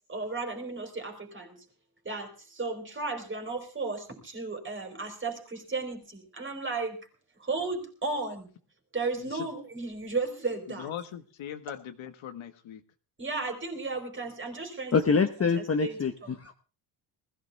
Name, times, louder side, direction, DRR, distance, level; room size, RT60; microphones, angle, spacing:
voice 1, 0.1-1.6 2.0-7.0 7.4-8.5 8.9-10.9 13.2-15.2 15.5-16.3, right 3 dB, 25° right, 4 dB, 4.1 m, -34 dB
voice 2, 10.7-12.8, left 9 dB, 80° left, 8 dB, 1.7 m, -40 dB
voice 3, 14.9-16.1 16.4-16.5, left 5 dB, 30° left, 6 dB, 1.0 m, -25 dB
20.0 x 15.5 x 3.5 m, 0.35 s
cardioid pair, 125°, 47 cm